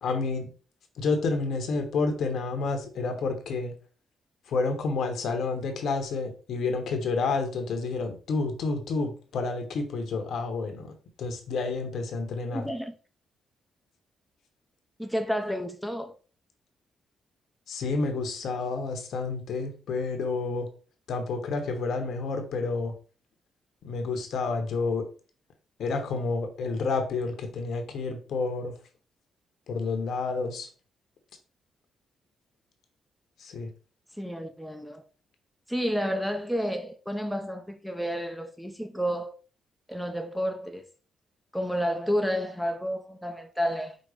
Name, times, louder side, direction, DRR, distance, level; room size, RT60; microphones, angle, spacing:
voice 1, 0.0-0.5 1.0-3.7 4.5-10.9 11.2-12.7 17.7-20.7 21.1-22.9 23.8-25.0 25.8-28.8 29.7-30.7 33.4-33.7, left 3 dB, 75° left, 1.1 m, -29 dB
voice 2, 12.5-12.9 15.0-16.1 34.2-35.0 35.7-39.3 39.9-40.9 41.5-44.0, equal, ahead, 0.6 m, -30 dB
5.2 x 2.1 x 4.9 m
cardioid pair, 90°, 0 cm